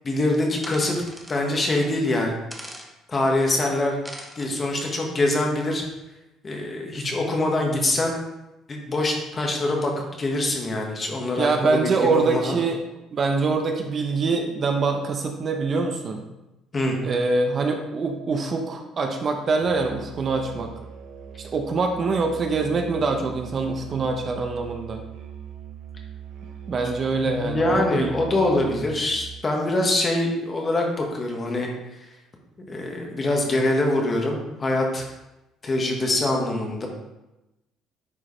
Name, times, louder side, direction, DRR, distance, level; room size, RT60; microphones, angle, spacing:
voice 1, 0.0-0.9 1.3-2.4 3.1-4.0 4.4-5.9 6.4-8.2 8.7-12.6 16.7-17.0 27.2-32.0 32.7-35.0 35.6-36.9, left 2 dB, 25° left, 1 dB, 1.5 m, -24 dB
sound 1, 0.6-1.4 2.5-2.9 4.0-4.6, equal, ahead, 1.0 m, -40 dB
voice 2, 11.4-12.8 13.1-16.2 17.0-20.7 21.4-25.0 26.7-28.1 28.6-28.7, right 3 dB, 35° right, 4 dB, 0.8 m, -24 dB
Musical instrument, 19.6-29.5, right 7 dB, 70° right, 0.9 m, -41 dB
9.7 x 4.9 x 3.2 m, 0.97 s
cardioid pair, 135°, 0 cm